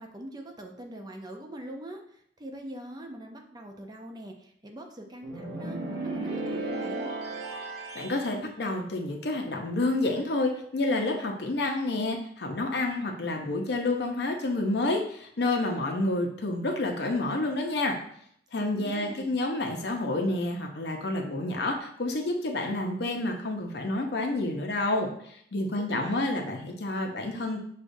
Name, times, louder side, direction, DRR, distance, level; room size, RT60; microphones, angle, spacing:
voice 1, 0.0-7.1 18.5-19.4 25.7-26.4, right 1 dB, 25° right, 3 dB, 0.5 m, -43 dB
sound 1, 5.2-8.2, right 2 dB, 60° right, 1.0 m, -34 dB
voice 2, 7.9-17.9 18.5-25.1 25.5-27.6, left 2 dB, 65° left, 2 dB, 0.7 m, -29 dB
6.3 x 2.4 x 2.6 m, 0.67 s
head